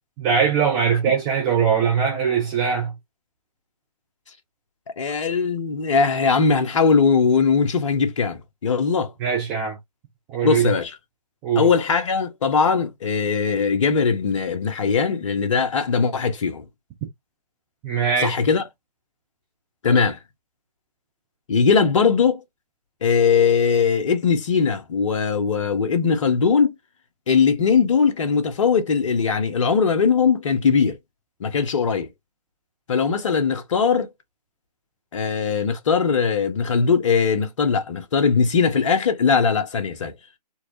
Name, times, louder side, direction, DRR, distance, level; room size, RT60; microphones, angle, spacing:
voice 1, 0.2-2.9 9.2-9.8 10.3-10.7 11.4-11.7 17.8-18.3, right 7 dB, 5° right, 0.3 m, -21 dB
voice 2, 5.0-9.1 10.4-10.9 11.5-16.6 18.2-18.6 19.8-20.2 21.5-22.4 23.0-26.7 27.3-31.0 31.4-32.1 32.9-34.1 35.1-40.1, left 5 dB, 45° left, 1.1 m, -20 dB
4.5 x 2.4 x 2.6 m
figure-of-eight pair, 140°, 21 cm